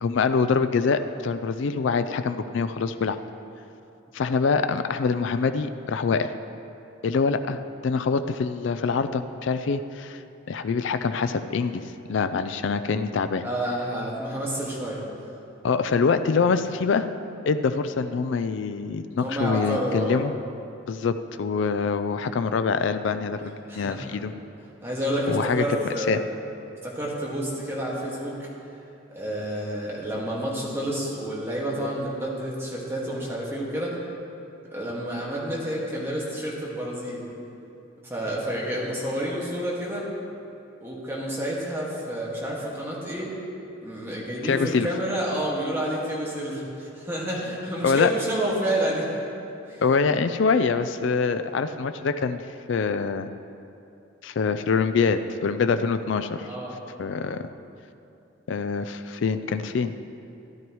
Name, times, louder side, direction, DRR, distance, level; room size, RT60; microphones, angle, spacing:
voice 1, 0.0-3.2 4.1-6.3 7.0-10.2 10.5-11.8 12.1-13.4 15.6-17.1 17.5-20.3 20.9-24.3 25.3-25.6 26.0-26.2 44.4-44.9 47.8-48.1 49.8-52.4 52.7-53.3 54.2-56.5 57.0-57.5 58.5-59.9, left 5 dB, 65° left, 10 dB, 0.4 m, -25 dB
voice 2, 13.4-15.0 19.1-20.2 23.7-24.3 24.8-26.3 26.8-28.5 29.1-34.0 34.7-37.2 38.0-40.1 40.8-43.3 43.8-49.1 49.7-49.8 56.5-56.7, equal, 10° right, -5 dB, 1.8 m, -29 dB
13.5 x 11.0 x 3.1 m, 2.7 s
head